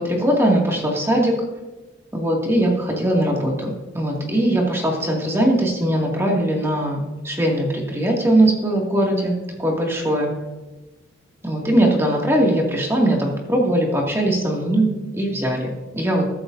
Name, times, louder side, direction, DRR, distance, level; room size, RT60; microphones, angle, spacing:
voice 1, 0.0-1.3 2.1-10.3 11.4-16.3, right 1 dB, 15° right, -1 dB, 2.3 m, -20 dB
22.0 x 8.7 x 2.7 m, 1.1 s
head